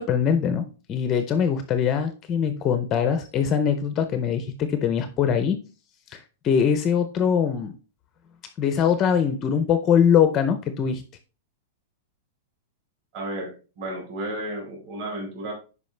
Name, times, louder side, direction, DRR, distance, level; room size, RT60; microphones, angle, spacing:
voice 1, 0.0-5.6 6.1-7.7 8.6-11.0, left 7 dB, 20° left, 9 dB, 0.5 m, -22 dB
voice 2, 13.1-15.5, right 1 dB, 40° right, -1 dB, 3.9 m, -33 dB
10.5 x 4.8 x 3.2 m, 0.35 s
supercardioid pair, 180°, 0 cm